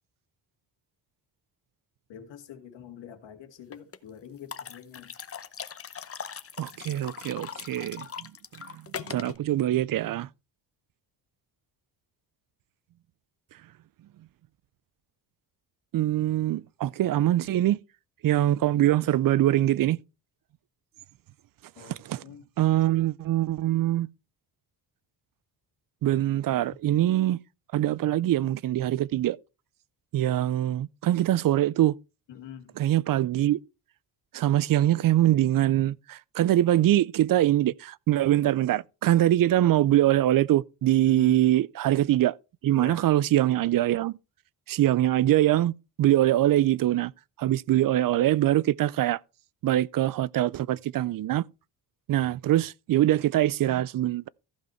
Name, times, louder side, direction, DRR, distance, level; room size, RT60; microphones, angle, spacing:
voice 1, 2.1-5.1 21.8-22.4 32.3-32.7 41.0-41.4 42.7-43.0, left 8 dB, 85° left, 1.9 m, -45 dB
sound 1, 3.7-4.0 4.5-9.4, left 7 dB, 35° left, 0.8 m, -40 dB
voice 2, 6.6-8.3 9.0-10.3 15.9-17.8 18.2-20.0 21.8-22.2 22.6-24.1 26.0-27.4 27.7-29.4 30.1-31.9 32.8-33.6 34.3-42.3 42.6-44.2 44.7-47.1 47.4-49.2 49.6-51.4 52.1-54.3, right 13 dB, 55° right, 0.4 m, -23 dB
14.5 x 5.4 x 4.4 m
cardioid pair, 115°, 43 cm